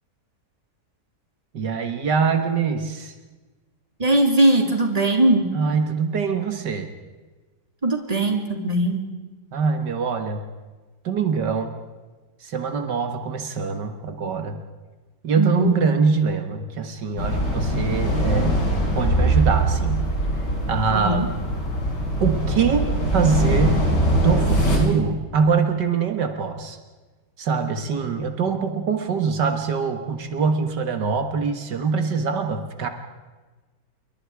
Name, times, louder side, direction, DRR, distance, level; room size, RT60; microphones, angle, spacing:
voice 1, 1.5-3.1 5.5-6.9 9.5-10.5 11.0-11.7 12.4-14.6 15.2-18.7 19.0-20.1 20.7-21.2 22.2-23.8 24.2-26.8 27.4-32.9, right 5 dB, 80° right, 7 dB, 2.2 m, -23 dB
voice 2, 4.0-5.4 7.8-9.0 15.4-15.8 20.9-21.3, right 1 dB, 20° right, 3 dB, 3.1 m, -20 dB
sound 1, 17.2-24.8, right 1 dB, 80° left, 6.1 m, -22 dB
27.0 x 23.0 x 4.9 m, 1.3 s
omnidirectional pair, 1.8 m